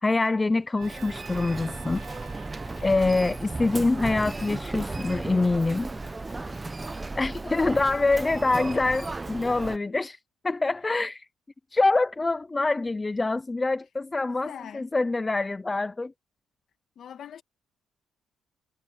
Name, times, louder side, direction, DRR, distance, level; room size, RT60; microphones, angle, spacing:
voice 1, 0.0-2.0 2.8-5.9 7.1-10.2 10.4-11.2 11.7-16.1, left 3 dB, 20° left, 0.6 m, -25 dB
Human voice, 0.8-9.8, right 3 dB, 20° right, 1.0 m, -35 dB
Trumpet, 0.8-5.0, right 12 dB, 85° right, 1.6 m, -51 dB
sound 1, 1.8-7.3, left 6 dB, 45° left, 3.1 m, -54 dB
voice 2, 14.4-14.9 17.0-17.4, left 9 dB, 60° left, 1.8 m, -43 dB
cardioid pair, 105°, 0 cm